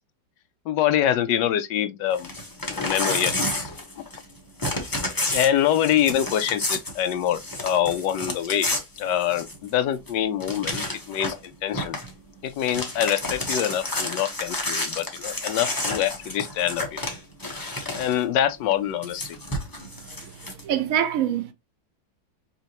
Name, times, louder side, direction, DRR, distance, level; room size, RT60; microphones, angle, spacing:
voice 1, 0.7-2.3 2.7-3.3 3.6-3.7 4.0-4.1 5.3-8.7 9.0-12.0 12.4-17.0 18.0-19.4, left 10 dB, 75° left, 1.1 m, -25 dB
Crumpling crinkling / Tearing, 2.1-4.3 4.6-9.7 10.1-10.2 10.4-11.4 11.7-12.1 12.5-18.2 19.0-20.6, left 2 dB, 20° left, 0.6 m, -30 dB
voice 2, 20.6-21.5, right 10 dB, 75° right, 0.7 m, -24 dB
5.6 x 2.9 x 2.8 m
omnidirectional pair, 2.3 m